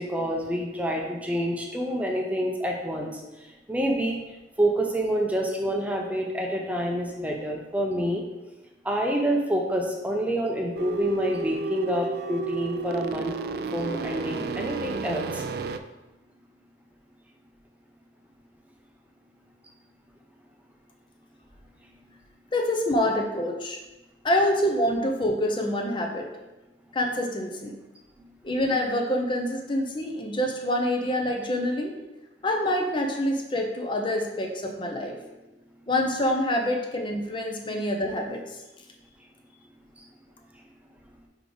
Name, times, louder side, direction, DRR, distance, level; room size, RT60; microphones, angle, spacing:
voice 1, 0.0-3.2 3.7-4.2 4.6-8.2 8.8-13.3 13.7-15.4 40.0-40.1, right 1 dB, 10° right, 1 dB, 0.6 m, -27 dB
sound 1, 10.8-15.8, right 4 dB, 60° right, 0.3 m, -32 dB
voice 2, 22.5-23.8 24.2-26.3 26.9-27.7 28.4-31.9 32.4-35.2 35.9-38.4, left 1 dB, 30° left, 2 dB, 0.6 m, -26 dB
5.0 x 4.8 x 3.9 m, 1.0 s
head